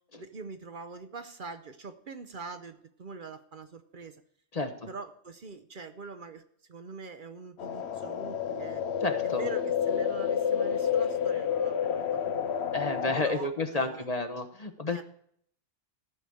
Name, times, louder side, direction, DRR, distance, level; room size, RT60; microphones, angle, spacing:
voice 1, 0.2-4.2 4.9-6.4 6.7-8.8 9.2-12.5 13.1-14.0 14.9-15.0, right 4 dB, 55° right, 9 dB, 0.9 m, -43 dB
sound 1, 7.6-13.2, left 8 dB, 75° left, 1.0 m, -29 dB
voice 2, 9.0-9.5 12.7-15.0, left 3 dB, 35° left, 7 dB, 1.1 m, -31 dB
14.5 x 5.0 x 8.3 m, 0.64 s
omnidirectional pair, 1.1 m